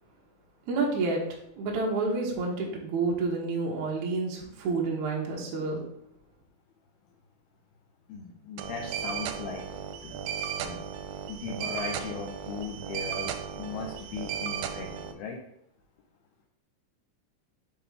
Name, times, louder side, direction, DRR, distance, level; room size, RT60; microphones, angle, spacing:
voice 1, 0.7-5.8, right 3 dB, 70° right, -2 dB, 1.8 m, -29 dB
voice 2, 8.1-10.8 11.3-15.4, left 5 dB, 80° left, 0 dB, 2.2 m, -38 dB
sound 1, 8.6-15.1, right 8 dB, 85° right, 2.9 m, -35 dB
6.9 x 3.7 x 5.5 m, 0.73 s
omnidirectional pair, 5.2 m